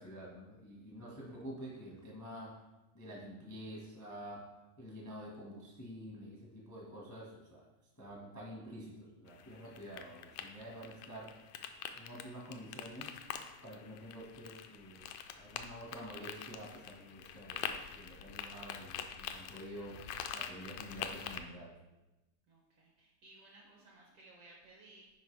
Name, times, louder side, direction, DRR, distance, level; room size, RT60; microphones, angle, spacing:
voice 1, 0.0-2.6 2.9-4.5 4.8-7.6 8.0-11.3 11.9-13.1 13.6-20.0 20.3-21.7, equal, 20° left, -4 dB, 0.4 m, -48 dB
sound 1, 9.3-21.4, left 9 dB, 80° left, 1.7 m, -45 dB
voice 2, 22.5-25.1, right 2 dB, 70° right, -1 dB, 1.4 m, -59 dB
9.6 x 4.8 x 3.4 m, 1.0 s
omnidirectional pair, 3.5 m